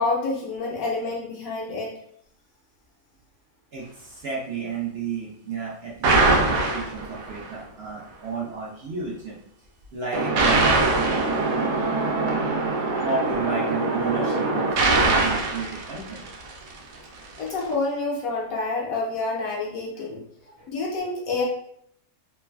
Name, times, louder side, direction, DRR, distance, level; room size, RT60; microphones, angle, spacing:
voice 1, 0.0-1.9 12.3-12.4 17.4-20.2 20.7-21.4, left 3 dB, 70° left, -2 dB, 1.0 m, -28 dB
voice 2, 3.7-9.4 9.9-10.9 11.4-11.6 13.0-16.3 17.2-17.3 20.5-20.7, right 4 dB, 70° right, -4 dB, 0.5 m, -32 dB
sound 1, 6.0-7.4 10.1-16.7, right 3 dB, 90° right, 1.2 m, -22 dB
3.2 x 2.3 x 2.2 m, 0.69 s
omnidirectional pair, 1.7 m